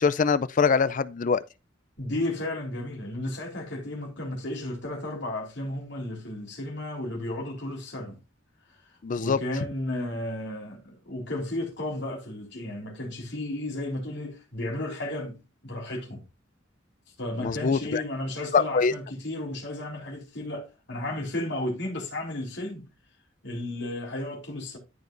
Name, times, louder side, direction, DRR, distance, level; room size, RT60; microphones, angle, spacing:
voice 1, 0.0-1.4 9.0-9.4 17.4-18.0 18.5-18.9, left 5 dB, 40° left, 0.4 m, -23 dB
voice 2, 2.0-8.2 9.2-16.2 17.2-22.9 23.4-24.8, left 1 dB, 65° left, 3.8 m, -33 dB
13.5 x 5.1 x 2.5 m
head